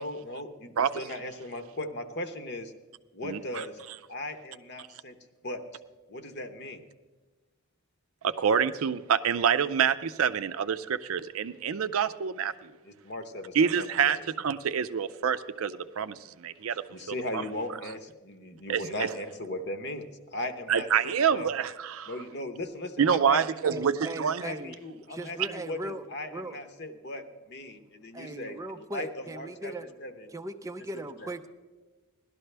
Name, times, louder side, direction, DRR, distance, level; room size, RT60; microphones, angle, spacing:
voice 1, 0.0-2.7 3.1-5.2 5.4-5.6 6.1-6.8 12.8-13.9 14.2-14.3 16.9-21.5 22.1-23.8 24.4-29.7 30.0-30.3 31.2-31.3, left 1 dB, 50° left, 8 dB, 0.9 m, -38 dB
voice 2, 3.2-3.6 8.2-12.7 13.5-17.4 18.7-19.1 20.7-22.1 23.0-24.4, right 7 dB, 70° right, 13 dB, 0.5 m, -27 dB
voice 3, 23.7-24.8 25.1-26.0 26.3-26.6 28.1-29.9 30.3-31.5, right 1 dB, 15° right, 8 dB, 0.4 m, -38 dB
17.5 x 12.0 x 3.3 m, 1.3 s
head